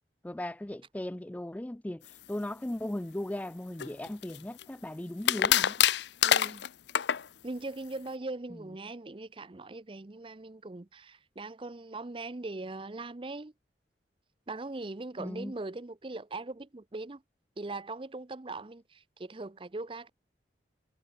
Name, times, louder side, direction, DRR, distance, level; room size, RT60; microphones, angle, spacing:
voice 1, 0.2-5.8 8.5-8.6 15.2-15.5, left 1 dB, 10° left, 0.3 m, -37 dB
sound 1, 3.8-4.6 5.3-7.3, left 10 dB, 75° left, 0.6 m, -25 dB
voice 2, 6.2-6.7 7.4-13.5 14.5-17.2 17.6-20.1, right 2 dB, 30° right, 0.6 m, -40 dB
head